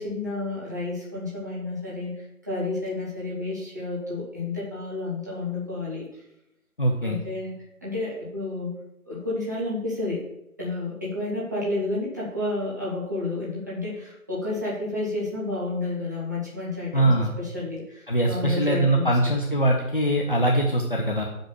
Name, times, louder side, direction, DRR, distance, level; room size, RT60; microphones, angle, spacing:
voice 1, 0.0-6.2 7.0-7.5 7.8-8.7 9.0-10.2 10.6-19.3, left 2 dB, 15° right, -8 dB, 1.1 m, -31 dB
voice 2, 6.8-7.2 16.9-17.3 18.1-21.2, right 1 dB, 40° left, 0 dB, 0.8 m, -22 dB
5.9 x 5.2 x 6.8 m, 0.86 s
figure-of-eight pair, 155°, 43 cm